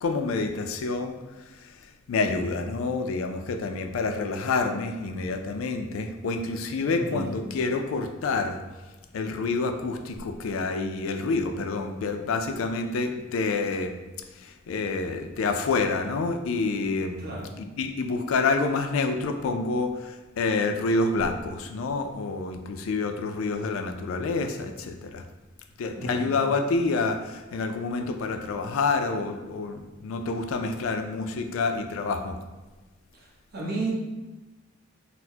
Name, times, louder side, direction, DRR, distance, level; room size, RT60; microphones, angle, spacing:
voice 1, 0.0-1.2 2.1-8.6 9.1-13.9 14.7-17.3 17.8-25.2 25.8-32.4, left 3 dB, 85° left, 6 dB, 0.4 m, -28 dB
voice 2, 6.9-7.3 7.6-7.7 17.2-17.5 25.9-26.4 33.1-33.9, right 2 dB, 50° right, -4 dB, 0.9 m, -34 dB
4.1 x 2.0 x 2.7 m, 1.2 s
head